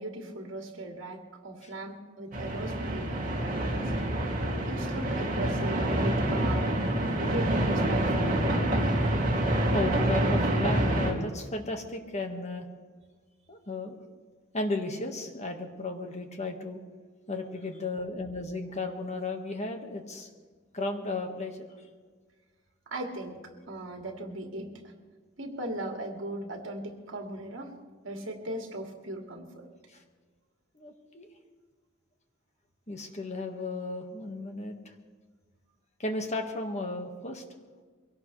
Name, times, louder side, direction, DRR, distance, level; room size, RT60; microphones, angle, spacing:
voice 1, 0.0-4.0 4.6-6.8 7.2-8.5 22.9-24.9 25.4-27.8 28.0-29.7, right 1 dB, 65° right, 2 dB, 2.3 m, -38 dB
sound 1, 2.3-11.1, right 1 dB, 40° right, 2.7 m, -27 dB
voice 2, 9.7-12.7 13.5-14.0 14.5-16.8 17.3-20.3 20.7-21.7 29.9-30.0 30.7-31.3 32.9-34.9 36.0-37.4, left 2 dB, 35° left, 4 dB, 1.6 m, -34 dB
23.0 x 17.5 x 3.3 m, 1.5 s
head